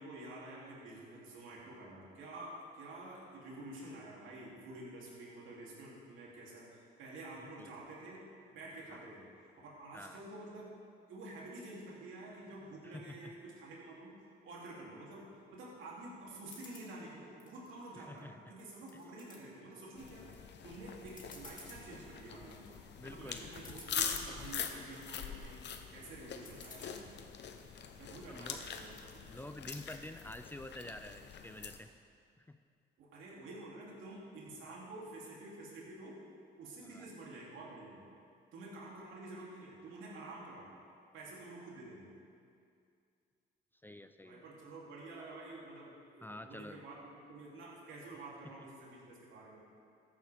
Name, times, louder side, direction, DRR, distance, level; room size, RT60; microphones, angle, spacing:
voice 1, 0.0-9.3 9.6-10.8 11.1-14.2 14.4-25.6 25.9-27.1 28.0-29.2 33.0-36.2 36.6-38.1 38.5-40.7 41.1-42.1 44.2-49.6, right 2 dB, 80° right, -5 dB, 3.1 m, -49 dB
voice 2, 12.8-13.3 17.9-18.3 22.9-23.5 28.3-28.6 29.2-31.9 32.4-32.6 34.7-34.8 36.8-37.1 43.8-44.5 46.2-46.8, left 1 dB, 10° left, 8 dB, 0.4 m, -48 dB
sound 1, 16.4-16.9 17.4-18.2 18.6-19.4 19.9-20.3 20.7-20.8 21.1-21.8 22.3-22.7 23.3-23.4 23.5-24.3 24.8-25.3 26.4-26.9, left 3 dB, 40° left, 2.3 m, -54 dB
sound 2, 20.0-31.8, left 7 dB, 60° left, 0.9 m, -44 dB
14.5 x 10.5 x 3.6 m, 2.4 s
cardioid pair, 90°, 20 cm